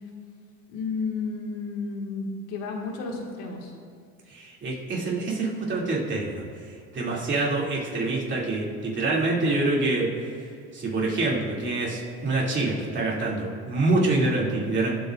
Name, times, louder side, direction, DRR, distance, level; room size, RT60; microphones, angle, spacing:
voice 1, 0.7-3.7, left 4 dB, 85° left, 0 dB, 2.0 m, -32 dB
voice 2, 4.3-6.5 6.9-10.1 10.7-14.9, right 2 dB, 35° right, -4 dB, 2.8 m, -26 dB
23.0 x 8.1 x 2.6 m, 2.3 s
cardioid pair, 125°, 33 cm